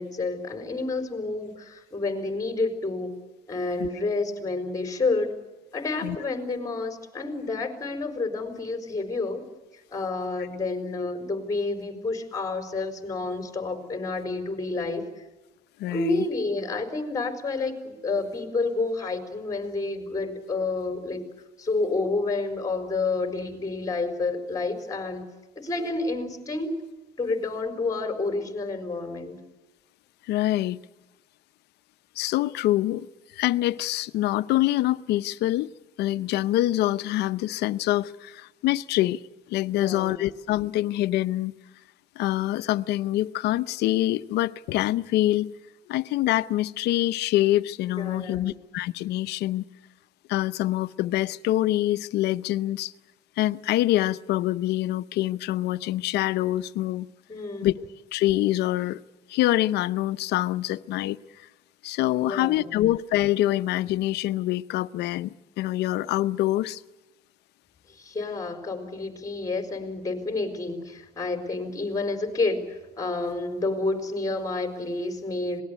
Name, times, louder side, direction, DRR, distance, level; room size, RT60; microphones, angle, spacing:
voice 1, 0.0-3.1 3.5-5.4 5.7-9.5 9.7-15.0 15.9-21.2 21.6-25.2 25.6-26.8 27.2-29.4 39.7-40.2 48.0-48.6 57.3-57.7 62.2-62.8 67.9-75.6, left 3 dB, 20° left, 4.4 m, -29 dB
voice 2, 15.8-16.2 30.3-30.8 32.2-33.1 33.4-35.7 36.0-39.2 39.5-41.5 42.2-45.5 45.9-49.6 50.3-52.9 53.4-57.1 57.6-57.7 58.1-59.0 59.3-61.2 61.8-66.8, left 15 dB, 80° left, 0.8 m, -25 dB
26.5 x 19.0 x 8.2 m
cardioid pair, 110°, 17 cm